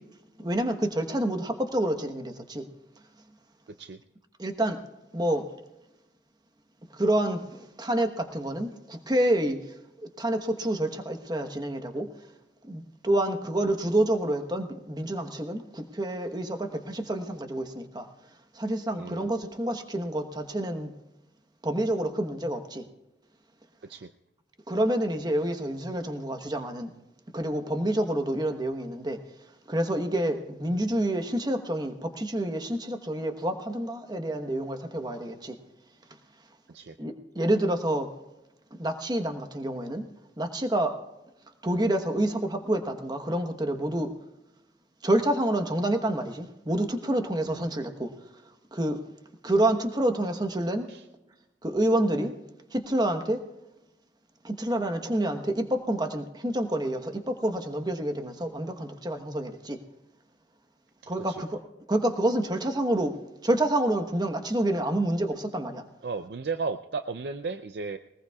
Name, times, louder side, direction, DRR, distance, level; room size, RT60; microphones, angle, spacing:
voice 1, 0.4-2.7 4.4-4.8 5.1-5.5 7.0-9.6 10.0-12.1 12.6-18.1 18.5-20.9 21.6-22.8 24.7-26.9 27.3-29.2 29.7-35.6 37.0-38.1 38.8-40.1 40.4-41.0 41.6-44.1 45.0-48.1 48.7-49.0 49.4-50.9 51.6-52.3 52.7-53.4 54.4-59.8 61.1-61.6 61.9-63.2 63.4-65.8, right 1 dB, 25° right, 6 dB, 1.1 m, -28 dB
voice 2, 19.0-19.3 23.9-24.1 36.7-37.0 47.5-47.7 50.9-51.0 61.0-61.4 66.0-68.0, right 4 dB, 65° right, 9 dB, 0.5 m, -34 dB
21.0 x 19.5 x 2.4 m, 0.97 s
head